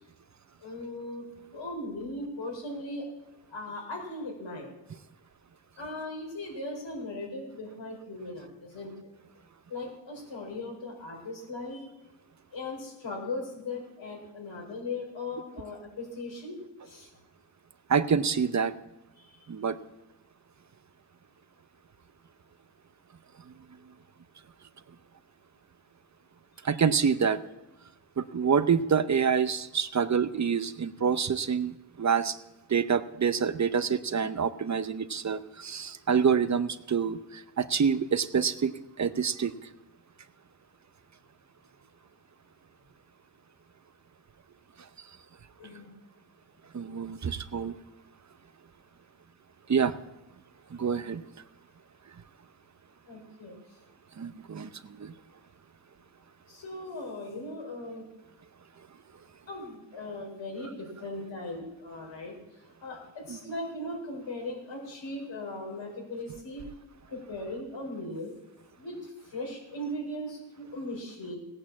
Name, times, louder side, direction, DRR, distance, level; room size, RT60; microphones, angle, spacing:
voice 1, 0.6-1.2 1.5-3.1 3.5-4.7 5.8-9.1 9.7-11.9 12.5-16.6 16.8-17.1 19.2-19.4 26.6-26.7 45.6-45.9 53.1-53.5 56.5-58.1 59.5-62.3 62.8-66.6 67.1-68.3 68.8-71.4, left 2 dB, 85° left, 0 dB, 4.5 m, -38 dB
voice 2, 17.9-18.7 19.5-19.8 26.6-27.4 28.2-32.4 32.7-39.5 46.7-47.7 49.7-49.9 50.7-51.2 54.2-55.1 63.3-63.4, right 6 dB, 40° right, 13 dB, 0.6 m, -27 dB
17.0 x 8.8 x 7.2 m, 0.98 s
wide cardioid pair, 120°, 44 cm